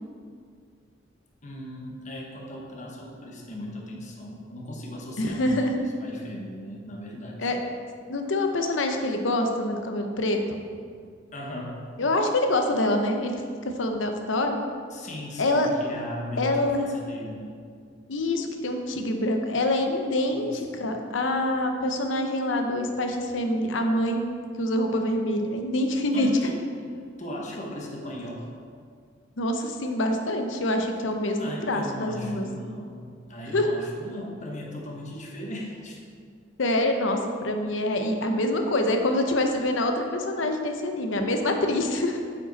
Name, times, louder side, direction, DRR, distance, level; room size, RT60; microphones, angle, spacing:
voice 1, 1.4-7.5 11.3-11.8 14.9-17.5 20.3-20.8 26.1-26.6 27.2-28.5 31.4-36.0, left 1 dB, 40° left, -2 dB, 1.1 m, -37 dB
voice 2, 5.2-5.8 7.4-7.6 8.1-10.4 12.0-13.4 13.8-14.5 15.4-15.7 16.4-17.0 18.1-24.2 24.6-26.3 29.4-32.5 33.5-33.7 36.6-42.2, left 1 dB, 90° left, 4 dB, 0.8 m, -25 dB
8.4 x 5.1 x 4.0 m, 2.1 s
head